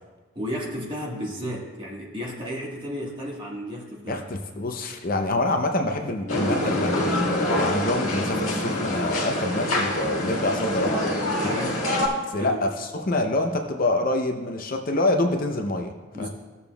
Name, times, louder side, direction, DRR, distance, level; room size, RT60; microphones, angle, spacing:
voice 1, 0.3-4.2 11.4-11.8 12.3-12.6 16.1-16.3, equal, 25° right, -3 dB, 1.4 m, -33 dB
voice 2, 4.1-10.9 11.4-11.6 12.3-16.3, left 2 dB, 45° left, 4 dB, 0.6 m, -26 dB
sound 1, 6.3-12.1, left 1 dB, 85° left, 1.6 m, -25 dB
15.5 x 6.9 x 2.3 m, 1.3 s
head